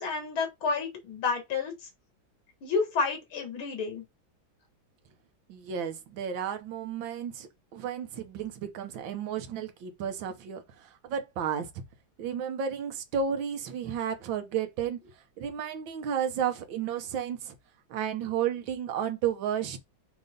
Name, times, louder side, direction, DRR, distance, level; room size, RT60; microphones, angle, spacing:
voice 1, 0.0-1.7 2.6-4.1, left 4 dB, 80° left, 2.6 m, -30 dB
voice 2, 5.5-11.7 12.2-17.5 17.9-19.8, right 8 dB, 70° right, 1.7 m, -32 dB
6.5 x 3.0 x 5.3 m
omnidirectional pair, 2.2 m